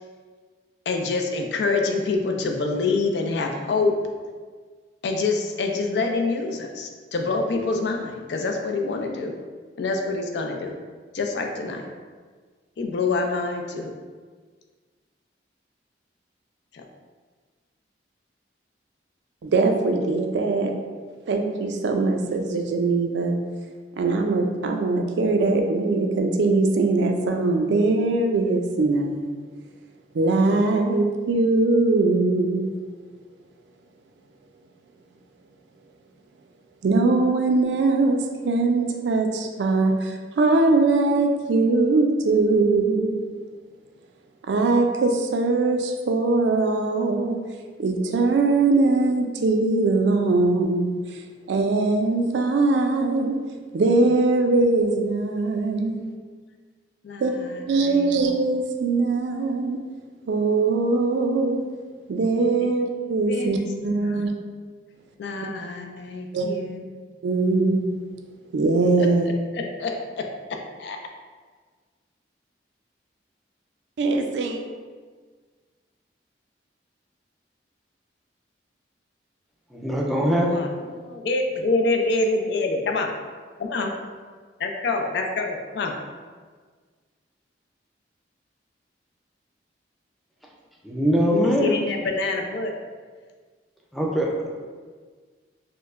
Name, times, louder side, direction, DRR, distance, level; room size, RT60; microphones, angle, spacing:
voice 1, 0.9-4.0 5.0-9.3 9.8-10.7 11.1-11.8 12.8-13.9 16.7-16.8 57.0-58.1 62.6-62.7 63.3-64.3 65.2-66.8 69.0-69.1 69.5-71.0 80.5-83.1 83.6-83.9 84.6-85.9 91.6-92.7, left 3 dB, 70° left, 3 dB, 0.4 m, -26 dB
voice 2, 19.4-20.7 21.3-23.4 24.0-29.4 30.1-32.7 36.8-43.2 44.5-47.4 47.8-50.9 51.5-53.4 53.7-56.0 57.2-57.3 57.7-59.8 60.3-61.6 62.1-64.3 66.3-66.5 67.2-67.9 68.5-69.3 74.0-74.6, right 3 dB, 75° right, 4 dB, 0.4 m, -21 dB
voice 3, 79.7-80.6 90.8-91.8 93.9-94.5, equal, ahead, -3 dB, 0.4 m, -22 dB
4.4 x 2.1 x 2.4 m, 1.5 s
head